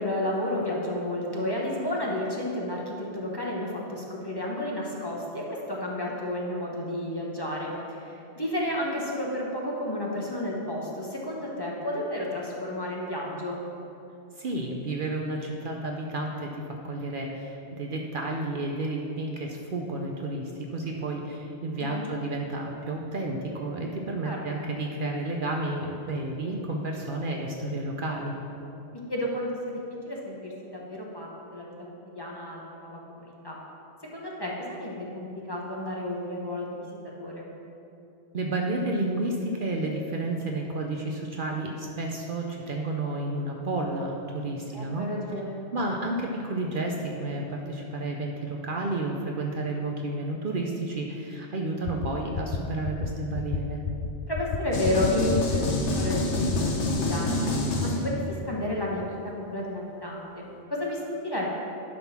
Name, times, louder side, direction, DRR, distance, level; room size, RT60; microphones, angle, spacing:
voice 1, 0.0-13.6 21.8-22.1 24.2-24.7 29.1-31.7 32.1-33.6 34.1-37.4 44.7-45.6 54.3-57.4 57.8-58.1 58.4-61.5, left 1 dB, 20° left, -4 dB, 1.0 m, -31 dB
voice 2, 14.4-16.5 16.8-28.4 38.3-45.1 45.7-53.8, right 2 dB, 55° right, 1 dB, 0.8 m, -31 dB
sound 1, 51.9-52.1 52.4-52.6 52.9-53.1 53.3-53.6 53.8-54.1 54.4-54.6 54.8-55.1 55.3-55.6 55.9-56.1 56.4-56.6, left 7 dB, 65° left, 0.8 m, -30 dB
sound 2, 54.7-58.4, left 2 dB, 85° left, 1.2 m, -27 dB
10.5 x 3.9 x 5.9 m, 2.8 s
omnidirectional pair, 1.2 m